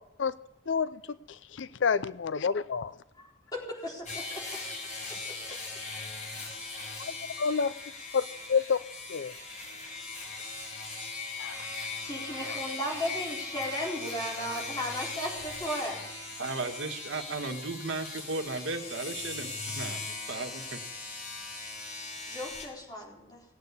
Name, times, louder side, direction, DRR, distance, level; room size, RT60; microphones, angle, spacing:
voice 1, 1.6-2.9 7.4-7.7 8.1-8.2 8.5-8.8 9.1-9.3 11.4-11.6, left 6 dB, 80° left, 16 dB, 0.5 m, -27 dB
voice 2, 3.1-4.6 5.5-5.6 12.1-16.0 22.3-23.4, equal, 20° left, -2 dB, 4.1 m, -36 dB
sound 1, 4.1-22.7, left 3 dB, 40° left, 5.0 m, -39 dB
voice 3, 16.4-20.0 20.3-20.5, right 3 dB, 90° right, 6 dB, 1.7 m, -35 dB
18.5 x 8.7 x 8.2 m, 0.85 s
head